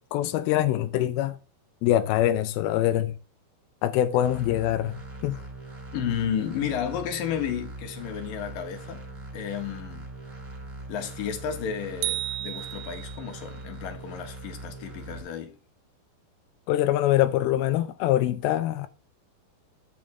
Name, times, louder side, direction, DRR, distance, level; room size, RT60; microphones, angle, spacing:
voice 1, 0.0-1.4 1.8-3.1 3.8-5.0 5.2-5.4 16.7-18.9, left 13 dB, 85° left, 2.2 m, -24 dB
sound 1, 4.2-15.2, right 2 dB, 15° right, 3.5 m, -41 dB
voice 2, 5.9-9.0 9.3-10.1 10.9-15.5, left 8 dB, 60° left, 2.9 m, -32 dB
sound 2, 12.0-13.4, right 16 dB, 85° right, 2.9 m, -33 dB
10.5 x 9.0 x 3.6 m
omnidirectional pair, 5.2 m